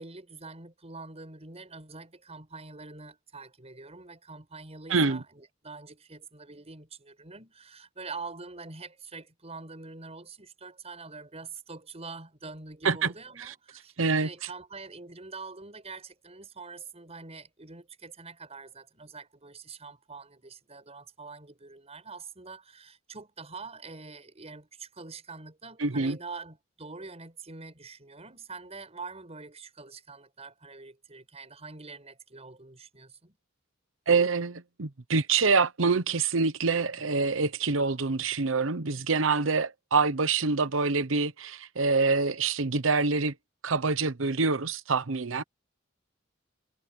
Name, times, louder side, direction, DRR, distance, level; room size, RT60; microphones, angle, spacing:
voice 1, 0.0-33.4 39.2-39.4, right 4 dB, 35° right, 7.4 m, -45 dB
voice 2, 4.9-5.2 12.8-13.1 14.0-14.3 25.8-26.2 34.1-43.3 43.6-45.4, right 4 dB, 90° right, 1.0 m, -26 dB
head